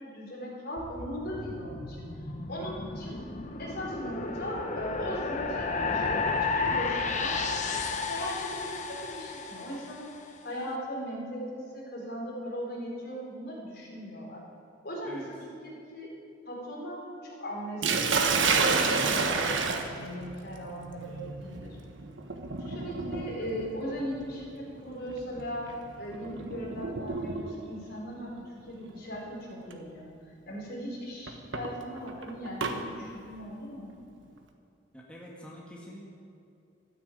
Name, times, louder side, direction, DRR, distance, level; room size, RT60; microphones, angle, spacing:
voice 1, 0.0-2.1 2.5-3.2 3.6-7.7 8.1-14.4 14.8-15.2 15.6-16.1 16.5-21.8 22.6-25.7 26.0-34.0, equal, 55° left, -3 dB, 4.3 m, -38 dB
sound 1, 0.8-10.1, left 4 dB, 40° left, 1.1 m, -33 dB
Sink (filling or washing), 17.8-27.8 28.9-29.2 29.7-29.8 31.3-32.8, right 4 dB, 75° right, 1.3 m, -30 dB
voice 2, 34.9-36.1, equal, 5° left, -4 dB, 1.7 m, -46 dB
14.0 x 9.6 x 8.6 m, 2.7 s
head